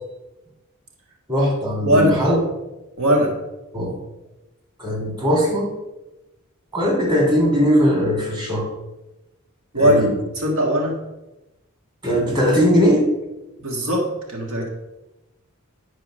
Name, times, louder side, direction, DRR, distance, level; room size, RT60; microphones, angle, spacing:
voice 1, 1.3-2.4 3.7-3.9 4.8-5.7 6.7-8.7 9.7-10.1 12.0-13.1, equal, 20° right, -2 dB, 2.9 m, -19 dB
voice 2, 1.8-2.2 3.0-3.3 9.7-10.0 10.3-11.0 13.6-14.7, equal, 70° right, 0 dB, 1.7 m, -19 dB
10.5 x 4.8 x 6.3 m, 1.0 s
head